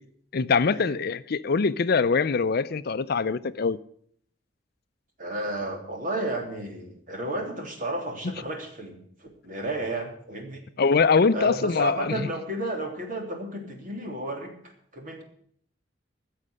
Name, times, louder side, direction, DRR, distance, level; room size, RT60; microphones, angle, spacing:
voice 1, 0.3-3.8 10.8-12.3, left 5 dB, 55° left, 0.5 m, -23 dB
voice 2, 5.2-8.9 9.2-10.6 11.3-14.5 14.9-15.2, right 1 dB, 45° right, 3.3 m, -32 dB
15.5 x 6.6 x 9.5 m
head